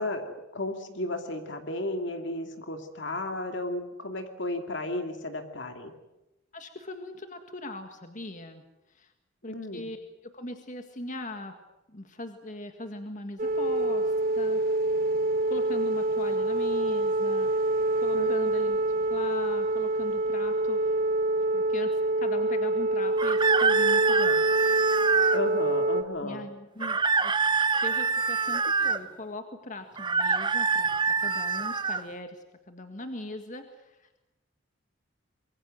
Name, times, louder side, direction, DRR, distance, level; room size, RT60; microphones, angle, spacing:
voice 1, 0.0-5.9 9.5-9.9 18.1-18.3 25.3-26.4, left 2 dB, 65° left, 6 dB, 2.7 m, -33 dB
voice 2, 6.5-8.6 8.9-9.1 9.4-11.6 11.9-14.6 15.5-18.8 19.1-21.0 21.5-24.4 26.2-34.2, left 2 dB, 40° left, 7 dB, 1.8 m, -40 dB
sound 1, 13.4-26.0, right 2 dB, 45° right, 1.4 m, -26 dB
sound 2, 23.2-25.4 26.8-29.0 30.0-32.0, right 5 dB, 25° right, 0.8 m, -25 dB
25.0 x 23.5 x 7.8 m, 0.96 s
head